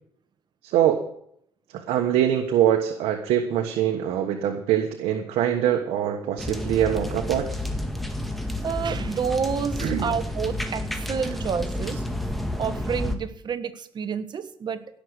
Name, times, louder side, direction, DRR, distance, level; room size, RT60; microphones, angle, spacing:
voice 1, 0.6-1.1 1.7-7.5 9.8-10.1, right 10 dB, 85° right, 4 dB, 1.3 m, -23 dB
sound 1, 6.4-13.1, left 1 dB, ahead, 2.0 m, -30 dB
voice 2, 8.6-12.0 12.6-14.8, right 6 dB, 50° right, 11 dB, 1.4 m, -29 dB
17.0 x 6.4 x 8.1 m, 0.70 s
cardioid pair, 95°, 10 cm